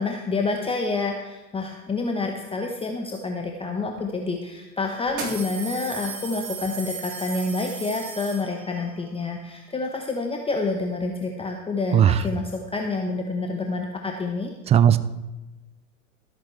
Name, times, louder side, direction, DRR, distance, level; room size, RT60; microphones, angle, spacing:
voice 1, 0.0-14.5, left 3 dB, 15° left, 3 dB, 1.0 m, -28 dB
sound 1, 4.0-4.1 5.1-8.9, right 5 dB, 45° right, 3.6 m, -35 dB
voice 2, 11.9-12.2 14.7-15.0, right 9 dB, 15° right, 14 dB, 0.4 m, -16 dB
14.0 x 13.0 x 3.3 m, 1.1 s
figure-of-eight pair, 80°, 41 cm